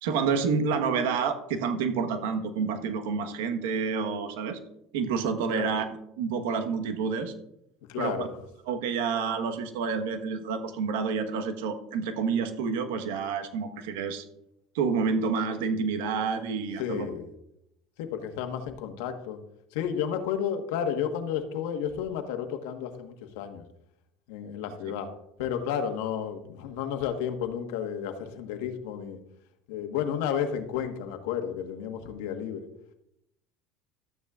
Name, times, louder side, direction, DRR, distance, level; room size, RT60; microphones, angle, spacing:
voice 1, 0.0-4.6 4.9-5.9 6.2-7.3 8.0-8.3 8.7-14.2 14.7-17.1, right 5 dB, 90° right, 7 dB, 1.2 m, -28 dB
voice 2, 7.9-8.3 16.8-17.3 18.0-19.4 19.7-23.6 24.3-25.1 25.4-29.2 29.7-32.7, left 8 dB, 80° left, 7 dB, 1.3 m, -32 dB
13.0 x 9.3 x 2.4 m, 0.80 s
supercardioid pair, 125°, 0 cm